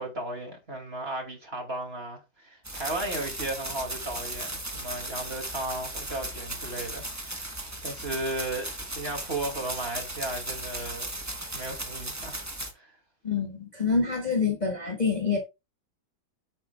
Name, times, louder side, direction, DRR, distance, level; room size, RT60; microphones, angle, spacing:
voice 1, 0.0-7.5 7.8-11.1 11.5-12.4 12.7-12.9, right 2 dB, 30° right, 2.5 m, -35 dB
sound 1, 2.6-12.7, right 1 dB, 15° right, 0.7 m, -36 dB
voice 2, 13.2-15.4, left 5 dB, 25° left, 1.5 m, -26 dB
9.2 x 7.4 x 2.3 m
omnidirectional pair, 2.2 m